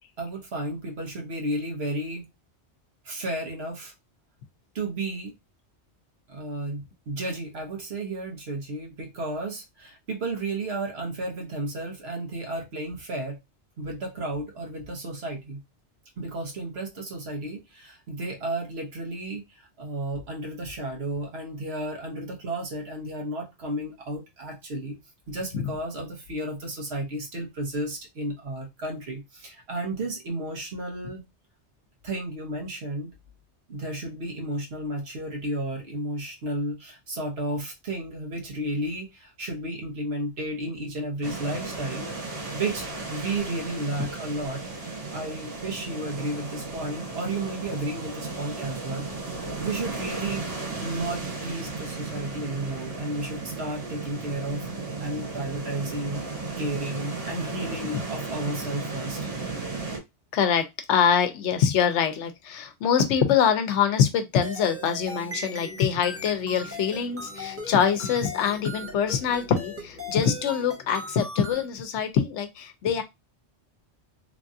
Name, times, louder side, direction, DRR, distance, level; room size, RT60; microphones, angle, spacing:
voice 1, 0.2-2.3 3.0-3.9 4.7-5.3 6.3-13.4 13.8-15.6 16.2-25.0 25.3-31.2 32.0-33.1 33.7-42.1 42.5-44.6 45.1-54.7 55.0-56.2 56.6-59.2, right 1 dB, 65° right, 1.2 m, -33 dB
sound 1, 41.2-60.0, right 3 dB, 80° right, 1.6 m, -35 dB
voice 2, 60.3-73.0, left 7 dB, 85° left, 0.9 m, -24 dB
sound 2, 64.3-71.8, left 3 dB, 50° left, 1.0 m, -47 dB
sound 3, 64.4-71.7, equal, 20° right, 0.5 m, -38 dB
3.2 x 2.4 x 2.6 m
omnidirectional pair, 1.2 m